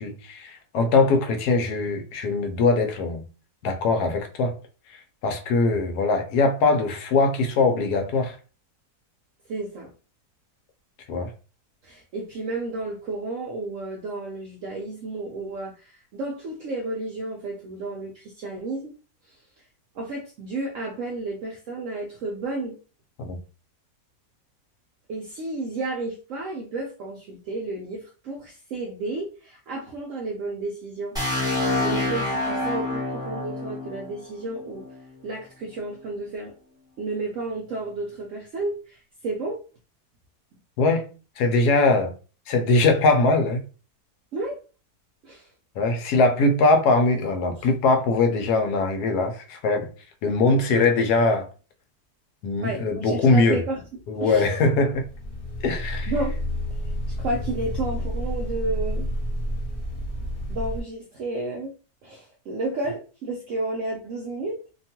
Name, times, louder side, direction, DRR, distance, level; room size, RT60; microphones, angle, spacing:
voice 1, 0.0-3.2 3.6-4.6 5.2-8.4 11.1-11.3 23.2-23.4 40.8-41.1 41.4-42.1 42.5-43.6 45.8-49.9 50.2-51.5 52.4-53.6 54.1-55.0 55.6-56.1, left 3 dB, 80° left, 1.1 m, -21 dB
voice 2, 9.5-9.9 11.8-18.9 19.2-19.6 19.9-22.8 25.1-31.2 31.4-34.8 35.2-36.5 37.0-39.6 44.3-44.6 45.2-45.5 47.6-47.7 52.6-53.8 54.2-54.5 56.1-56.3 56.8-59.1 60.5-61.7 62.0-64.6, right 2 dB, 70° right, 0.8 m, -32 dB
sound 1, 31.2-35.0, left 2 dB, 5° right, 0.8 m, -27 dB
sound 2, 54.9-60.8, equal, 30° left, 0.7 m, -30 dB
2.8 x 2.3 x 2.8 m
omnidirectional pair, 1.7 m